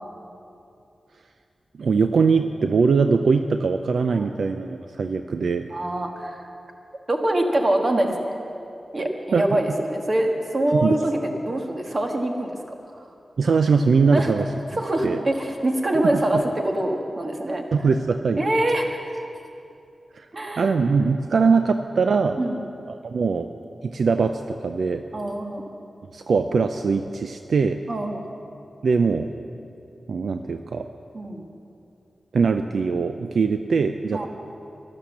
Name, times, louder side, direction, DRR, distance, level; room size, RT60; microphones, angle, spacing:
voice 1, 1.8-5.7 9.3-9.6 10.7-11.0 13.4-14.4 15.0-15.2 16.1-16.2 17.7-18.4 20.2-20.3 20.6-22.4 22.9-23.5 23.8-25.0 26.1-27.8 28.8-29.3 30.1-30.9 32.3-34.3, right 5 dB, 75° right, 7 dB, 0.4 m, -21 dB
voice 2, 5.7-6.5 7.1-8.2 8.9-12.7 14.1-14.3 14.7-17.6 18.4-18.9 20.3-20.7 21.3-21.5 22.4-22.6 25.1-25.6 27.9-28.2 31.1-31.4 34.1-34.3, right 1 dB, 40° right, 2 dB, 1.6 m, -24 dB
12.5 x 11.5 x 7.3 m, 2.7 s
wide cardioid pair, 100°, 0 cm